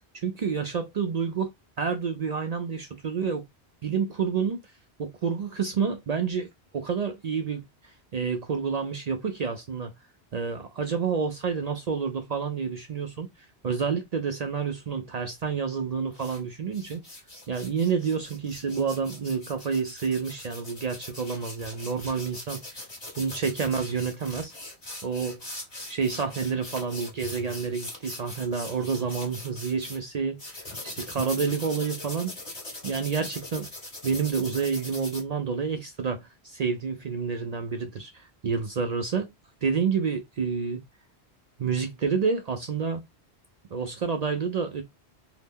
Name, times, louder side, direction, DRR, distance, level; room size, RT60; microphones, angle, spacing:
voice 1, 0.1-1.5 1.8-3.4 3.8-4.6 5.0-6.5 6.7-7.6 8.1-9.9 10.3-13.3 13.6-17.0 17.5-22.9 23.2-24.5 25.0-25.4 25.9-32.3 32.8-33.7 34.0-39.3 39.6-40.8 41.6-43.0 43.7-44.8, right 5 dB, 55° right, 0.4 m, -29 dB
sound 1, 16.1-16.4 16.7-30.0 30.4-35.2, left 1 dB, 35° left, 1.4 m, -41 dB
2.7 x 2.1 x 3.5 m
omnidirectional pair, 1.1 m